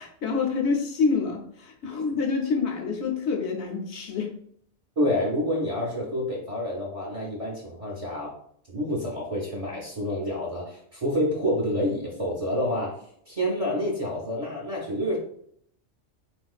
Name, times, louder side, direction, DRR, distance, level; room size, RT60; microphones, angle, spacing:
voice 1, 0.0-4.3, left 5 dB, 70° left, 1 dB, 0.9 m, -27 dB
voice 2, 5.0-8.3 8.7-12.9 13.3-15.2, equal, 40° right, -3 dB, 0.5 m, -28 dB
3.6 x 2.4 x 2.3 m, 0.65 s
omnidirectional pair, 1.2 m